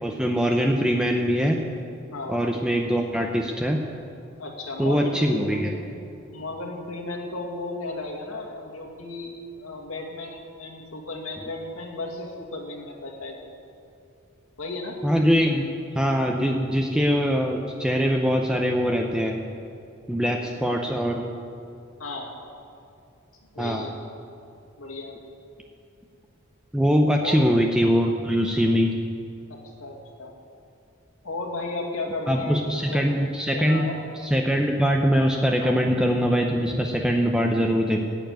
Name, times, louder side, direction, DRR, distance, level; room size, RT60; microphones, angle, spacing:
voice 1, 0.0-1.6 2.3-3.8 4.8-5.7 15.0-15.6 15.9-19.4 20.1-21.3 23.6-23.9 26.7-29.0 32.3-33.9 34.2-38.0, equal, 5° right, 1 dB, 0.7 m, -22 dB
voice 2, 2.1-2.4 4.4-5.7 6.3-13.4 14.6-15.0 22.0-22.4 23.5-23.9 24.8-25.1 27.2-27.4 29.5-30.3 31.2-34.0 35.6-35.8, left 2 dB, 90° left, 0 dB, 2.3 m, -34 dB
16.5 x 7.2 x 9.2 m, 2.6 s
head